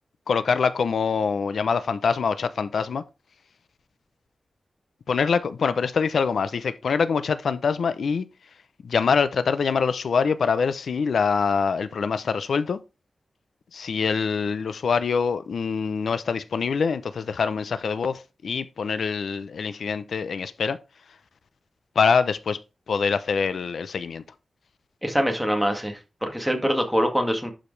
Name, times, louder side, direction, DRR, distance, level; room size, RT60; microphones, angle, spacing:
voice 1, 0.3-3.0 5.1-8.3 8.8-12.8 13.7-20.8 22.0-22.6 22.9-24.2, left 5 dB, 85° left, 0.6 m, -24 dB
voice 2, 25.0-27.5, equal, ahead, 1.9 m, -24 dB
11.5 x 5.0 x 3.2 m
wide cardioid pair, 130°, 0 cm